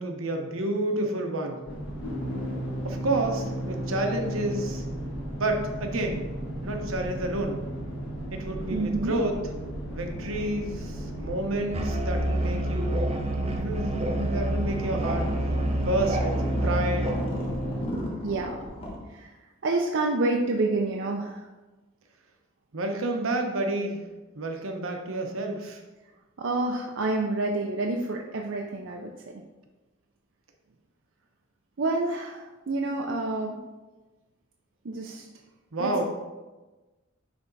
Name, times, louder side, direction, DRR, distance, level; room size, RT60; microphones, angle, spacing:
voice 1, 0.0-1.6 2.8-4.8 5.3-6.2 6.6-7.6 8.3-9.3 9.9-15.3 15.8-17.1 22.7-24.0 24.4-25.8 35.7-36.0, right 1 dB, 80° right, 3 dB, 1.0 m, -30 dB
sound 1, 1.7-17.8, right 1 dB, 65° left, 2.1 m, -34 dB
voice 2, 8.7-9.2 18.2-18.6 19.1-21.5 26.4-29.2 31.8-33.6 34.8-35.3 35.8-36.0, right 2 dB, 65° right, 0 dB, 0.6 m, -28 dB
Musical instrument, 11.7-17.3, right 1 dB, 30° right, 0.7 m, -28 dB
sound 2, 14.6-19.0, equal, 30° left, 1.4 m, -36 dB
9.9 x 3.5 x 4.0 m, 1.2 s
head